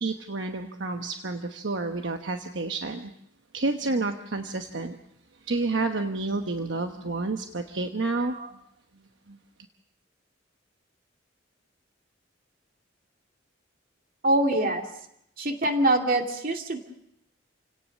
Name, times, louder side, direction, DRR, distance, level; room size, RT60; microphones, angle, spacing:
voice 1, 0.0-3.1 3.5-5.0 5.5-8.4 9.3-9.4, right 3 dB, 70° right, 5 dB, 1.0 m, -29 dB
voice 2, 14.2-14.8 15.4-16.8, right 1 dB, 45° right, 3 dB, 2.5 m, -24 dB
28.5 x 17.5 x 6.4 m, 0.78 s
head